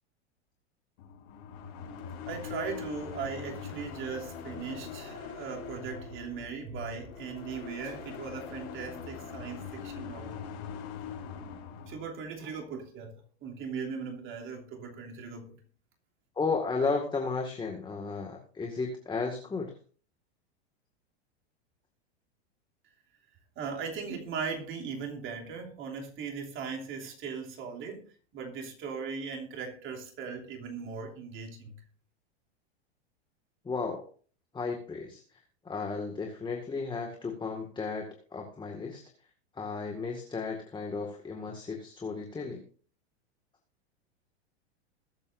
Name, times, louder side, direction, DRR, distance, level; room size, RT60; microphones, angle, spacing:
sound 1, 1.0-12.1, left 6 dB, 60° left, 7.0 m, -42 dB
voice 1, 2.3-10.4 11.8-13.1 13.4-15.6 23.5-28.1 28.3-31.8, right 5 dB, 40° right, 3.0 m, -38 dB
voice 2, 16.4-19.7 33.6-34.0 34.5-35.2 35.6-39.0 39.6-42.6, left 4 dB, 15° left, 2.0 m, -34 dB
21.5 x 8.2 x 2.6 m
hypercardioid pair, 115°, 33 cm